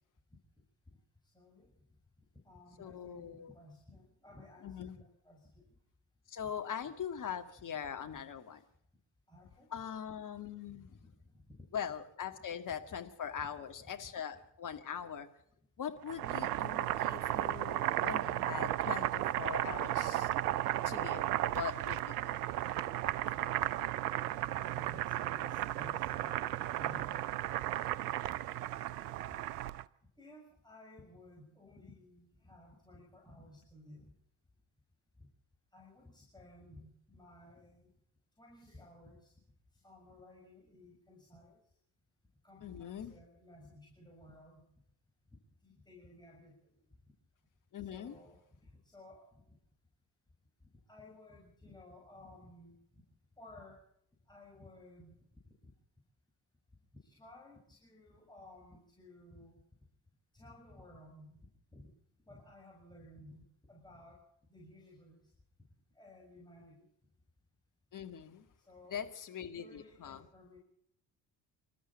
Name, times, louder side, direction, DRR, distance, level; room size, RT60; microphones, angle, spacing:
voice 1, 1.3-1.7 2.4-5.7 9.3-9.8 10.7-10.9 11.5-11.7 12.7-12.8 13.4-13.5 17.4-17.6 17.8-18.0 23.4-23.5 23.7-27.3 28.0-28.4 30.2-34.1 35.2-35.3 35.7-37.9 38.4-39.3 39.8-41.6 42.4-44.6 45.6-46.7 47.9-49.3 50.9-53.0 53.4-53.8 54.3-55.1 55.6-55.7 57.0-59.6 60.3-61.4 61.7-61.9 62.3-64.2 64.5-65.3 65.9-66.9 68.7-69.2 69.5-70.6, left 1 dB, 10° left, -3 dB, 6.5 m, -56 dB
voice 2, 2.8-3.5 4.6-5.0 6.3-8.6 9.7-10.9 11.7-15.3 15.8-20.3 20.8-21.2 21.5-22.3 42.6-43.1 47.7-48.1 67.9-68.5 68.9-70.3, left 8 dB, 40° left, 6 dB, 2.1 m, -42 dB
Boiling, 16.0-29.8, right 13 dB, 70° right, 0.7 m, -34 dB
26.5 x 13.5 x 7.4 m, 0.71 s
figure-of-eight pair, 45°, 48 cm